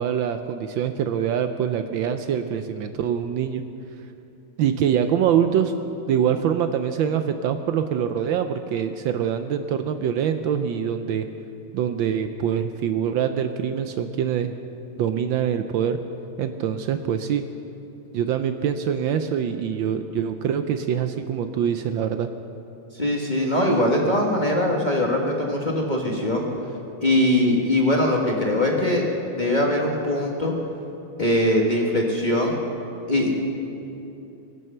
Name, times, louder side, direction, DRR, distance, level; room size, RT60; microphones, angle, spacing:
voice 1, 0.0-3.6 4.6-5.7 6.1-11.2 11.7-14.5 15.0-16.0 16.4-17.4 18.1-22.3, right 8 dB, 75° right, 8 dB, 1.3 m, -24 dB
voice 2, 23.0-26.5 27.0-29.0 29.4-30.5 31.2-32.6 33.1-33.3, left 1 dB, 25° left, -1 dB, 1.3 m, -21 dB
23.0 x 7.8 x 6.6 m, 2.9 s
omnidirectional pair, 2.4 m